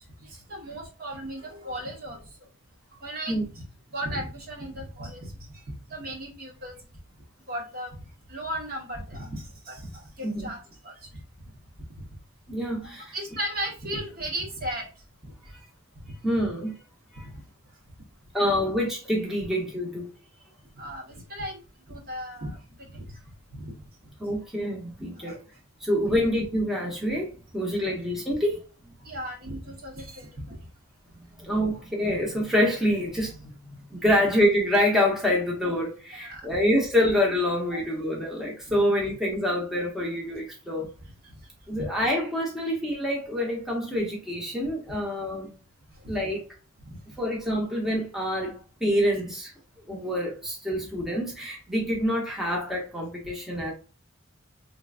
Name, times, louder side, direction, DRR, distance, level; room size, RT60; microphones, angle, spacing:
voice 1, 0.2-2.2 3.0-3.6 3.9-5.6 5.9-6.7 7.5-8.0 8.3-10.9 12.0-12.1 12.8-14.9 15.2-15.3 16.0-16.1 20.8-21.6 21.9-23.2 23.5-23.7 25.2-25.4 29.0-30.6 36.1-36.5 37.7-37.8 38.8-38.9 41.7-41.9 46.0-46.2 46.9-47.0, right 1 dB, 50° right, 1.3 m, -36 dB
voice 2, 12.5-13.1 16.2-16.7 17.1-17.3 18.3-20.1 24.2-25.3 25.8-28.6 31.4-40.9 41.7-45.5 46.1-46.4 47.2-48.6 48.8-49.5 49.9-53.7, equal, ahead, 0.8 m, -26 dB
3.8 x 3.2 x 2.4 m
head